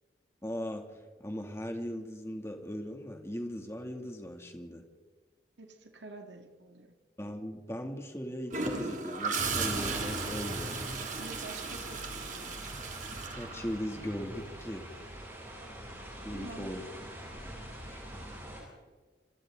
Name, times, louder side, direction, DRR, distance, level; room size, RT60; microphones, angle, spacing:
voice 1, 0.4-4.8 7.2-10.8 13.1-14.9 16.2-16.8 17.9-18.0, equal, 15° left, 3 dB, 2.5 m, -39 dB
voice 2, 5.6-6.9 11.2-13.0 16.3-16.7, right 2 dB, 85° right, 4 dB, 2.2 m, -48 dB
Gurgling / Toilet flush, 8.5-14.2 16.3-16.5, right 4 dB, 45° right, 2.8 m, -36 dB
sound 1, 9.3-18.6, equal, 15° right, 7.8 m, -42 dB
27.5 x 26.5 x 3.9 m, 1.4 s
head